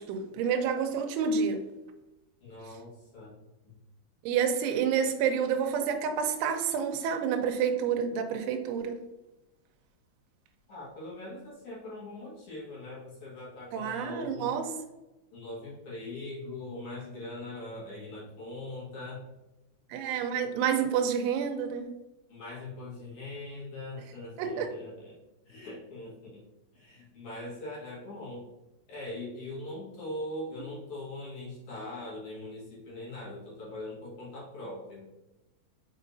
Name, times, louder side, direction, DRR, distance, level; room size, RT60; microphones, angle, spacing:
voice 1, 0.0-1.6 4.3-9.0 13.7-14.7 19.9-21.9 24.4-24.7, right 7 dB, 85° right, 5 dB, 3.1 m, -29 dB
voice 2, 2.4-3.3 3.7-3.8 10.7-14.5 15.3-19.2 22.3-25.2 25.5-26.4 26.7-28.5 28.9-35.1, left 2 dB, 60° left, -6 dB, 2.1 m, -41 dB
6.5 x 5.6 x 2.7 m, 1.0 s
omnidirectional pair, 5.5 m